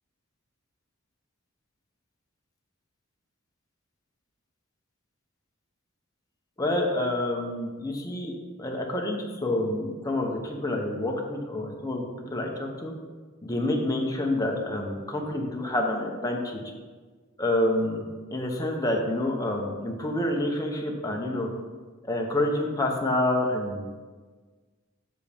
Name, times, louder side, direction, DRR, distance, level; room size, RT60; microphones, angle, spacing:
voice 1, 6.6-8.3 8.6-12.0 12.3-12.9 13.4-16.6 17.4-21.5 22.1-23.9, left 1 dB, 15° left, 0 dB, 0.9 m, -28 dB
7.5 x 6.8 x 3.5 m, 1.4 s
head